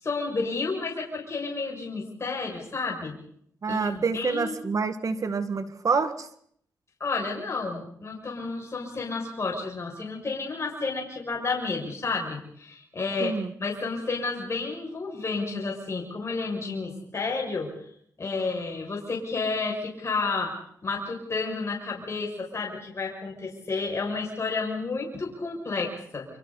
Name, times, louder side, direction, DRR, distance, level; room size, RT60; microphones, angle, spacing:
voice 1, 0.0-3.2 3.7-4.5 7.0-13.3 13.6-17.7 18.2-20.5 20.8-26.3, left 4 dB, 40° left, -1 dB, 6.5 m, -31 dB
voice 2, 3.6-6.3 13.2-13.5, right 4 dB, 50° right, 10 dB, 1.9 m, -27 dB
29.0 x 26.0 x 4.2 m, 0.66 s
cardioid pair, 70°, 7 cm